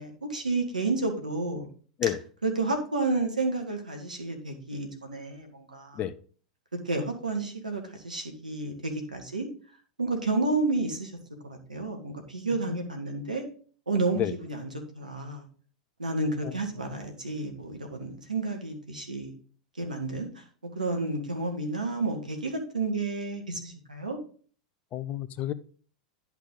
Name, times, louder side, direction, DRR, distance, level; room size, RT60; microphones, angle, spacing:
voice 1, 0.0-1.7 2.4-6.0 6.8-9.5 10.0-11.1 11.4-13.4 13.9-14.7 14.9-15.5 16.0-19.3 19.8-20.4 20.7-24.2, right 3 dB, 90° right, 1.8 m, -31 dB
voice 2, 24.9-25.5, left 11 dB, 35° left, 0.7 m, -30 dB
10.5 x 5.8 x 3.9 m
figure-of-eight pair, 95°, 4 cm